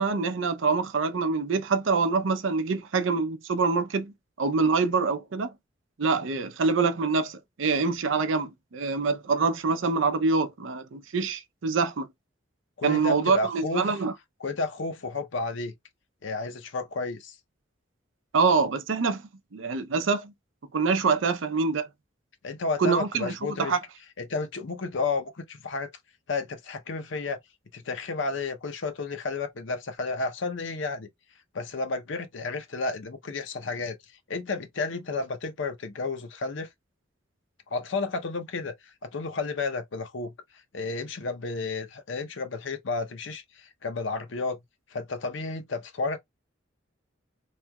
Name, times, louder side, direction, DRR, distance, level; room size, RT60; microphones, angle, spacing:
voice 1, 0.0-5.5 6.0-12.1 12.8-14.1 18.3-19.2 19.5-20.3 20.7-21.9 22.8-23.8, right 4 dB, 80° right, 0.5 m, -25 dB
voice 2, 12.8-13.9 14.4-15.7 16.2-17.3 22.4-23.7 24.2-25.9 26.3-27.4 27.7-31.1 31.5-34.0 34.3-36.7 37.7-38.7 39.0-40.3 40.7-44.6 44.9-46.2, left 3 dB, 75° left, 0.7 m, -32 dB
3.2 x 2.9 x 2.2 m
head